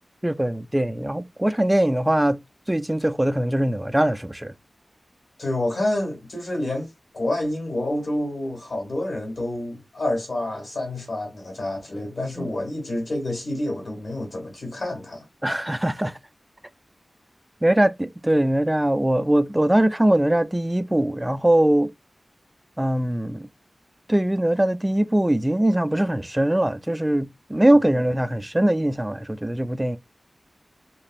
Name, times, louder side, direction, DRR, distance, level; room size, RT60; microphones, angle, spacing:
voice 1, 0.2-2.4 2.7-4.5 12.4-12.5 15.4-16.2 17.6-21.9 22.8-23.5 24.1-30.0, right 1 dB, 15° right, 0.3 m, -21 dB
voice 2, 5.4-15.3, left 1 dB, 65° left, 1.5 m, -28 dB
3.0 x 2.5 x 2.4 m
cardioid pair, 50°, 0 cm